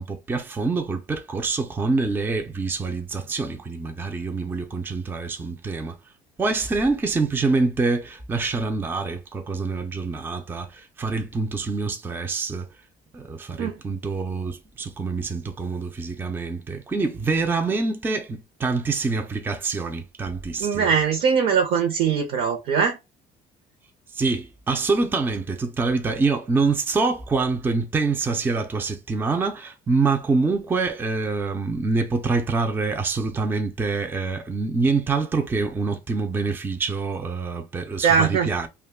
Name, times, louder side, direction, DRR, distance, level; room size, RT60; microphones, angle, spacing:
voice 1, 0.0-5.9 6.4-12.7 13.1-20.9 24.1-38.7, right 4 dB, 15° right, 0.4 m, -25 dB
voice 2, 20.6-23.0 38.0-38.5, right 6 dB, 65° right, 0.7 m, -21 dB
2.5 x 2.2 x 3.5 m
cardioid pair, 125°, 16 cm